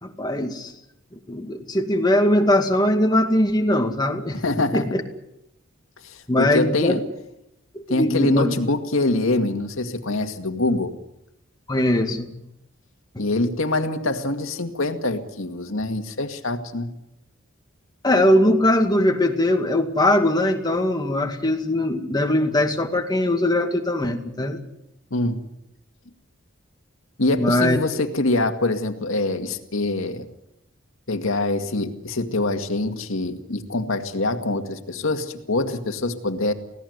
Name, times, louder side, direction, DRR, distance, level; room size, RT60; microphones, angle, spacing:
voice 1, 0.0-0.7 1.1-4.4 4.7-5.0 6.3-7.0 7.9-8.5 11.7-12.3 13.1-13.2 18.0-24.6 27.4-27.8, left 1 dB, 20° left, 4 dB, 2.2 m, -21 dB
voice 2, 4.4-4.9 6.0-7.0 7.9-10.9 13.2-16.9 25.1-25.4 27.2-30.3 31.1-36.5, left 2 dB, 85° left, 6 dB, 2.1 m, -24 dB
25.0 x 17.5 x 8.1 m, 0.84 s
head